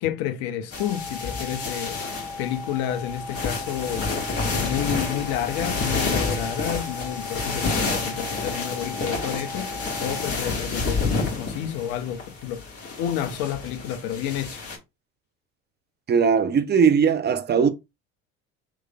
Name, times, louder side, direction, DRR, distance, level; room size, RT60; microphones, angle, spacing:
voice 1, 0.0-2.0 2.4-4.1 4.6-12.7 13.0-14.6, left 10 dB, 60° left, 0.7 m, -30 dB
sound 1, 0.7-14.8, left 4 dB, 35° left, 1.5 m, -29 dB
sound 2, 0.8-10.3, left 3 dB, 85° right, 0.7 m, -38 dB
voice 2, 16.1-17.7, right 6 dB, 25° right, 0.6 m, -19 dB
3.6 x 3.1 x 2.3 m
hypercardioid pair, 60°, 41 cm